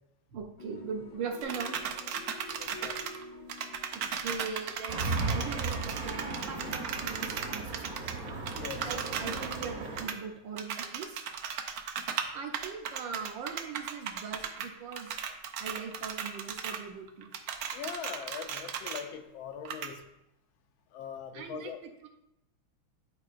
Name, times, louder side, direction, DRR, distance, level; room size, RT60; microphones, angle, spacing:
voice 1, 0.3-1.8 3.9-8.0 8.8-11.2 12.3-15.1 15.6-17.3 21.3-21.7 22.0-22.1, right 5 dB, 70° right, 3 dB, 1.4 m, -40 dB
sound 1, 0.6-5.8, left 2 dB, 50° left, 0.6 m, -49 dB
sound 2, 1.4-3.2 3.5-9.7 10.0-10.2 10.6-12.3 12.5-14.7 14.9-16.8 17.1-19.0 19.6-19.9, right 7 dB, 90° right, 0.8 m, -36 dB
voice 2, 2.6-3.2 8.5-8.9 17.7-20.1 20.9-21.8, left 7 dB, 80° left, 7 dB, 1.4 m, -42 dB
sound 3, 4.9-10.0, right 3 dB, 50° right, 1.0 m, -36 dB
10.5 x 4.5 x 2.5 m, 0.87 s
omnidirectional pair, 2.2 m